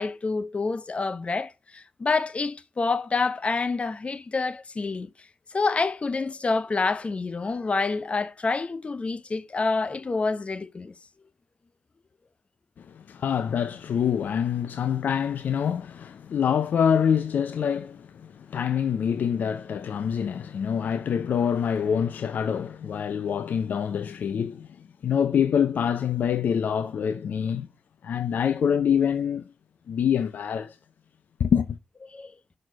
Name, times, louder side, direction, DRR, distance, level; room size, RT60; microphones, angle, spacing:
voice 1, 0.0-5.1 5.5-10.9 32.1-32.3, left 4 dB, 40° left, 0.8 m, -27 dB
voice 2, 12.8-27.7 28.0-29.5 29.9-30.8 31.4-31.8, left 8 dB, 65° left, 0.5 m, -26 dB
6.2 x 4.2 x 6.4 m
supercardioid pair, 40°, 3 cm